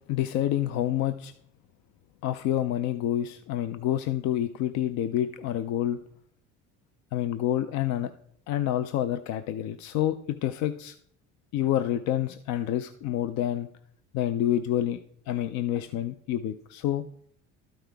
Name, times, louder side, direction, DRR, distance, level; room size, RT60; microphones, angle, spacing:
voice 1, 0.1-1.3 2.2-6.0 7.1-8.1 8.5-11.0 11.5-13.7 14.1-15.0 15.3-17.0, left 12 dB, 65° left, 11 dB, 0.5 m, -28 dB
12.5 x 5.6 x 3.4 m, 0.66 s
cardioid pair, 110°, 30 cm